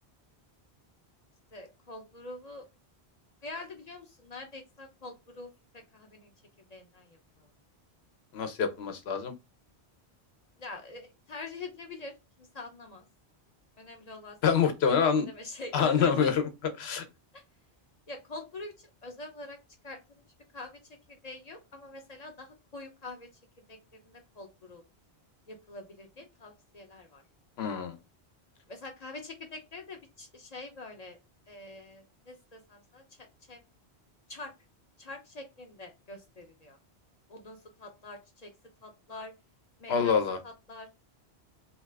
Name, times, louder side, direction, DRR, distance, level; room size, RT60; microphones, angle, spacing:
voice 1, 1.5-2.6 3.4-6.3 6.7-7.5 10.6-13.0 13.8-14.4 14.6-14.7 15.2-16.3 17.3-17.4 18.1-19.6 19.8-20.2 20.5-20.8 21.1-23.3 23.7-24.8 25.5-27.2 28.7-31.2 31.5-33.6 34.3-34.5 35.0-36.8 37.3-38.5 38.8-39.3 39.8-40.2 40.4-40.9, left 2 dB, 45° left, 0.6 m, -45 dB
voice 2, 8.3-9.3 14.4-15.3 15.7-16.5 16.8-17.0 27.6-27.9 39.9-40.4, left 6 dB, 75° left, 0.9 m, -26 dB
2.8 x 2.4 x 3.3 m
omnidirectional pair, 1.1 m